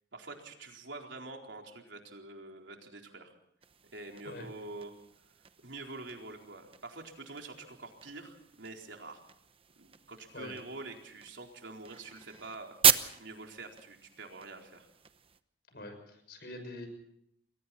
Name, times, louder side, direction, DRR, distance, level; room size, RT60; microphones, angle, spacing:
voice 1, 0.1-3.4 3.9-4.9 5.6-9.2 9.8-12.8 13.2-14.9, right 3 dB, 90° right, 2 dB, 4.2 m, -46 dB
sound 1, 3.6-15.4, right 9 dB, 30° right, 0.9 m, -36 dB
voice 2, 15.7-16.9, left 2 dB, 60° left, 7 dB, 6.4 m, -44 dB
29.0 x 22.5 x 4.3 m, 0.72 s
head